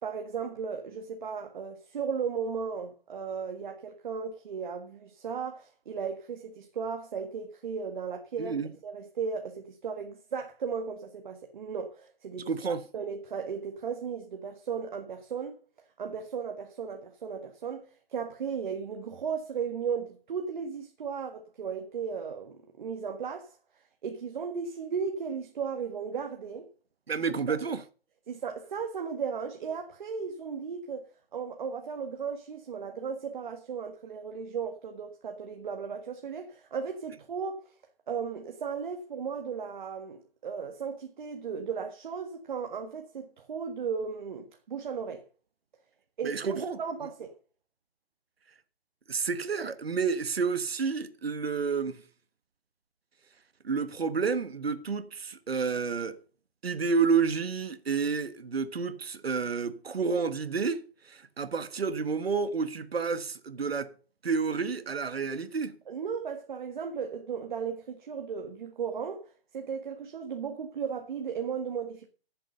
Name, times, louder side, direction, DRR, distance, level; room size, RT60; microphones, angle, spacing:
voice 1, 0.0-8.6 8.8-15.6 16.0-23.6 24.0-26.7 27.5-27.6 28.3-37.6 38.1-45.2 46.2-47.3 65.9-72.1, right 6 dB, 45° right, 1.7 m, -36 dB
voice 2, 8.4-8.7 12.5-12.8 27.1-27.8 46.2-46.8 49.1-52.0 53.6-56.2 56.6-63.9 64.2-65.8, right 5 dB, 65° right, 1.4 m, -30 dB
14.0 x 7.7 x 6.7 m
figure-of-eight pair, 140°, 32 cm